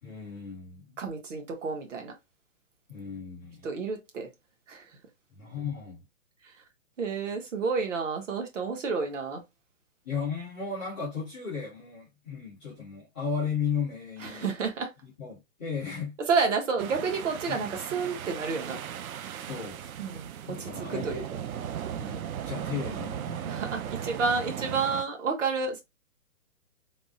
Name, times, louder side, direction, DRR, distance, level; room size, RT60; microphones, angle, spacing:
voice 1, 0.0-1.0 2.9-3.7 5.3-6.0 10.0-14.4 15.0-16.2 17.5-17.8 19.5-19.8 20.5-21.3 21.9-23.4, left 6 dB, 5° left, 0.5 m, -35 dB
voice 2, 1.0-2.1 3.6-4.3 4.7-4.9 7.0-9.4 14.2-14.9 16.3-18.8 20.0-21.2 22.0-22.2 23.5-25.8, right 4 dB, 60° right, 1.0 m, -30 dB
sound 1, 16.8-25.0, right 9 dB, 80° right, 0.5 m, -37 dB
3.5 x 2.0 x 2.6 m
hypercardioid pair, 160°, 42 cm